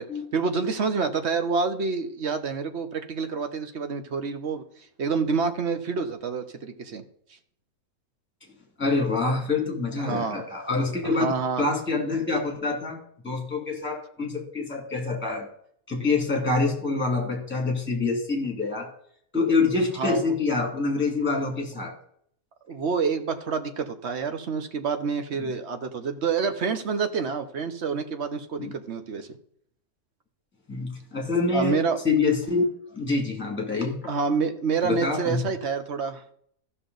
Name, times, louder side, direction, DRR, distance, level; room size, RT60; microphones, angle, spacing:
voice 1, 0.3-4.6 5.0-7.0 10.0-10.4 11.0-11.6 20.0-20.2 22.7-29.3 31.5-32.0 34.1-36.2, right 5 dB, 50° right, 8 dB, 1.1 m, -27 dB
voice 2, 8.8-11.3 11.6-13.0 13.2-15.5 15.9-18.9 19.3-21.9 25.4-25.5 28.6-28.7 30.7-31.8 32.0-34.1 34.8-35.4, left 3 dB, 5° left, 1 dB, 2.3 m, -26 dB
14.5 x 6.1 x 3.9 m, 0.67 s
omnidirectional pair, 1.6 m